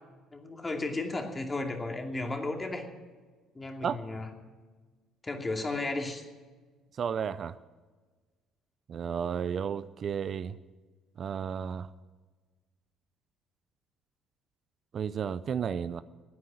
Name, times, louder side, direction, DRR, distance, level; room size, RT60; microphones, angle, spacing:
voice 1, 0.3-2.8 3.5-4.3 5.2-6.2, left 2 dB, 25° left, 3 dB, 2.6 m, -34 dB
voice 2, 7.0-7.5 8.9-10.5 11.2-11.9 14.9-16.0, right 7 dB, 50° right, 15 dB, 0.5 m, -32 dB
14.5 x 9.3 x 10.0 m, 1.4 s
hypercardioid pair, 60°, 0 cm